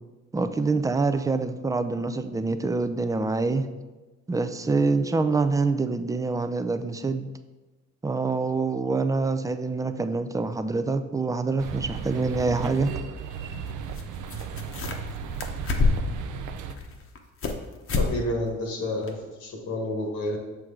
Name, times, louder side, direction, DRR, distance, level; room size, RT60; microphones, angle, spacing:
voice 1, 0.3-3.7 4.3-7.3 8.0-13.0, right 3 dB, 10° right, 9 dB, 0.4 m, -26 dB
sound 1, 11.6-16.7, right 6 dB, 80° right, 0.5 m, -35 dB
sound 2, 13.9-14.0 14.3-15.1 15.4-16.2 16.7-17.6 17.9-18.1 18.5-18.6 19.1-19.2, left 3 dB, 45° left, 0.9 m, -26 dB
voice 2, 17.9-20.4, left 1 dB, 80° left, 1 dB, 1.4 m, -30 dB
6.4 x 4.6 x 3.7 m, 1.2 s
cardioid pair, 90°, 30 cm